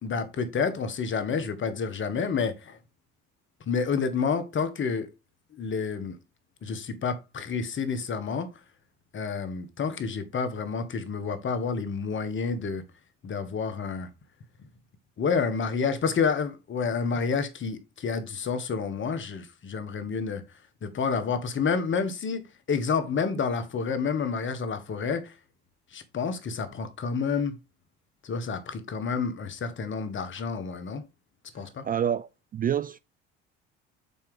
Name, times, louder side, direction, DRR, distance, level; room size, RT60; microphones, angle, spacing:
voice 1, 0.0-2.8 3.7-5.1 5.5-6.2 6.6-8.5 9.1-12.8 13.2-14.1 15.2-20.4 20.8-25.3 25.9-27.5 28.2-31.0 31.5-31.8, left 5 dB, 40° left, 1.4 m, -29 dB
voice 2, 31.8-33.0, right 9 dB, 30° right, 0.4 m, -28 dB
7.0 x 4.5 x 3.8 m
hypercardioid pair, 70°, 29 cm